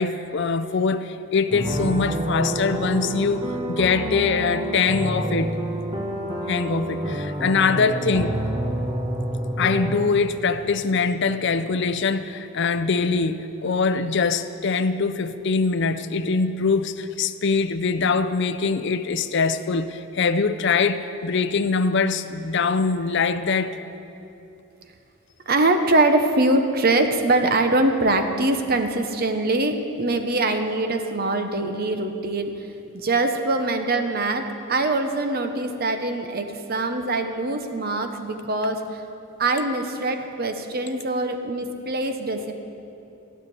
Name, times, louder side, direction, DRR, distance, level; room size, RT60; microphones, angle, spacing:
voice 1, 0.0-5.5 6.5-8.4 9.6-23.8, left 4 dB, 55° left, 11 dB, 0.5 m, -23 dB
sound 1, 1.5-10.0, right 1 dB, 20° right, 1.2 m, -28 dB
voice 2, 25.5-32.7 32.9-39.0 39.4-42.5, right 2 dB, 45° right, 6 dB, 1.0 m, -23 dB
15.5 x 6.7 x 9.6 m, 2.8 s
head